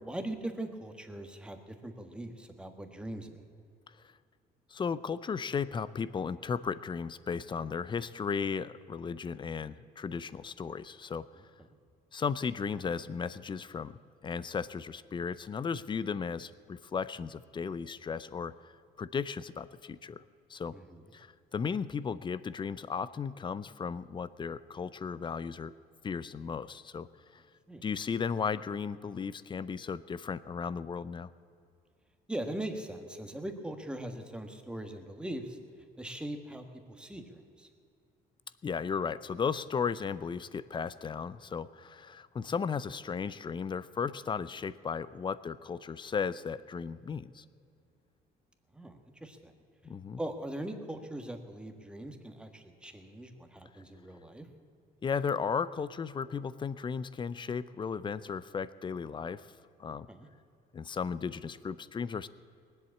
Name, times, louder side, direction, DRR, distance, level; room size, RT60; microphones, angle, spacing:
voice 1, 0.0-3.4 20.7-21.0 27.7-27.8 32.3-35.6 36.0-36.6 37.0-37.7 48.7-49.5 50.2-54.5 60.1-60.3, right 1 dB, 5° right, 5 dB, 1.5 m, -40 dB
voice 2, 4.7-11.3 12.1-20.2 20.5-20.8 21.1-25.7 26.0-27.1 27.3-27.4 27.8-31.3 38.6-47.4 49.8-50.2 55.0-59.5 59.8-60.1 60.7-62.3, left 6 dB, 30° left, 17 dB, 0.5 m, -35 dB
19.5 x 8.0 x 8.4 m, 2.4 s
cardioid pair, 110°, 17 cm